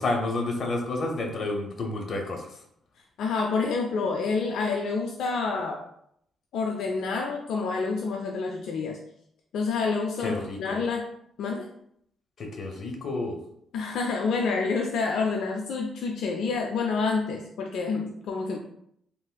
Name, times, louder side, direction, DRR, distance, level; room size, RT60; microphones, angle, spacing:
voice 1, 0.0-2.6 10.2-10.8 12.4-13.4, left 2 dB, 50° left, 2 dB, 0.7 m, -30 dB
voice 2, 3.2-5.8 6.5-9.0 9.5-11.1 11.4-11.7 13.7-18.6, left 4 dB, 75° left, 2 dB, 0.3 m, -28 dB
3.4 x 2.4 x 2.3 m, 0.72 s
cardioid pair, 90°, 0 cm